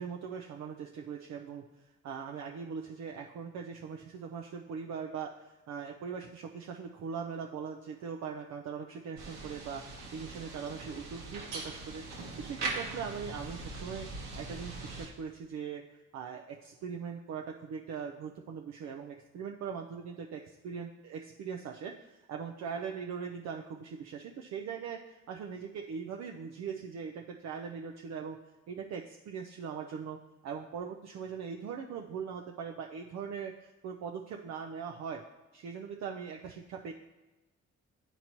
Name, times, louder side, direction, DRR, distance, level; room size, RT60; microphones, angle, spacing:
voice 1, 0.0-12.0 12.4-20.4 20.6-28.4 28.7-30.2 30.4-35.2 35.5-36.9, right 6 dB, 65° right, 2 dB, 0.5 m, -41 dB
sound 1, 9.2-15.1, right 3 dB, 90° right, 1.3 m, -41 dB
9.7 x 4.0 x 2.9 m, 1.1 s
cardioid pair, 90°, 30 cm